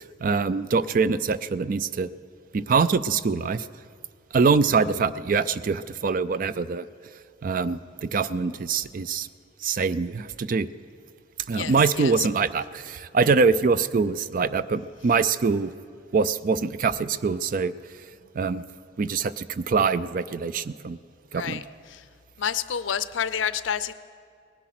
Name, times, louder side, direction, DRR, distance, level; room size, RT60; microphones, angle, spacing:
voice 1, 0.2-2.1 2.5-3.7 4.3-6.8 7.4-9.3 9.6-10.7 11.5-15.7 16.1-17.7 18.4-18.6 19.0-21.0 21.3-21.6, right 5 dB, 45° right, 15 dB, 0.4 m, -24 dB
voice 2, 11.5-12.3 21.3-21.6 21.9-22.0 22.4-23.9, left 8 dB, 85° left, 15 dB, 0.5 m, -29 dB
19.0 x 10.0 x 5.9 m, 2.2 s
head